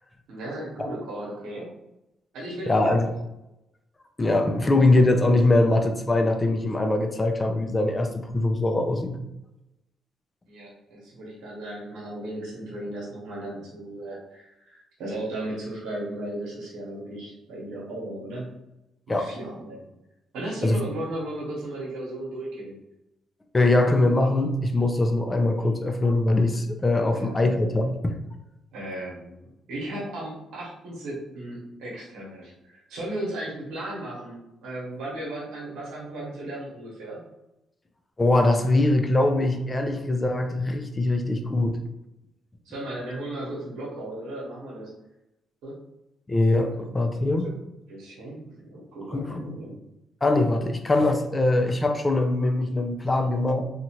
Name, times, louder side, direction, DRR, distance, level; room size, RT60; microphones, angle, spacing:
voice 1, 0.3-1.7 2.3-3.1 10.5-18.6 19.1-19.9 20.3-22.8 27.1-27.8 28.7-34.4 34.6-37.2 42.6-44.9 45.6-45.7 46.6-46.9 47.4-47.5 47.9-49.8, right 1 dB, 85° right, -5 dB, 1.1 m, -36 dB
voice 2, 2.7-3.1 4.2-9.2 19.1-19.3 20.6-20.8 23.5-28.1 38.2-41.8 46.3-47.5 49.1-49.5 50.2-53.6, left 2 dB, 20° left, 5 dB, 0.4 m, -22 dB
2.9 x 2.4 x 2.8 m, 0.91 s
cardioid pair, 90°, 0 cm